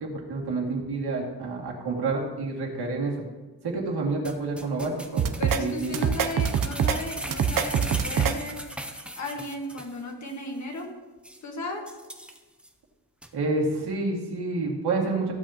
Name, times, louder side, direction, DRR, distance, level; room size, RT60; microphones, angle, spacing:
voice 1, 0.0-3.2 3.6-6.0 13.3-15.3, right 3 dB, 80° right, -2 dB, 2.3 m, -29 dB
sound 1, 4.2-10.0 10.3-10.4 10.8-10.9 11.2-11.4 11.9-12.7 13.2-13.3, right 1 dB, 5° right, 0.6 m, -38 dB
sound 2, 5.2-5.6 5.9-7.0 7.3-8.3, right 8 dB, 55° right, 0.7 m, -24 dB
voice 2, 5.4-8.8 9.2-10.9 11.4-11.8, left 1 dB, 45° left, 1 dB, 1.6 m, -35 dB
15.0 x 8.0 x 2.9 m, 1.2 s
wide cardioid pair, 155°, 39 cm